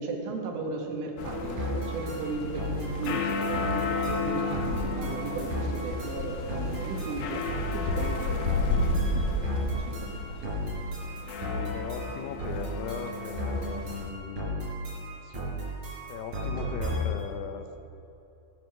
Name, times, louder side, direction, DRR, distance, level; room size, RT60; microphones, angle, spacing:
voice 1, 0.0-8.9 9.2-10.5, right 4 dB, 75° right, 1 dB, 4.3 m, -36 dB
sound 1, 1.2-14.1, left 3 dB, 75° left, 3.6 m, -32 dB
sound 2, 1.6-17.3, equal, 40° right, 5.1 m, -35 dB
voice 2, 11.6-15.6 16.1-17.7, left 6 dB, 90° left, 7 dB, 3.8 m, -39 dB
21.0 x 10.0 x 6.1 m, 3.0 s
omnidirectional pair, 5.9 m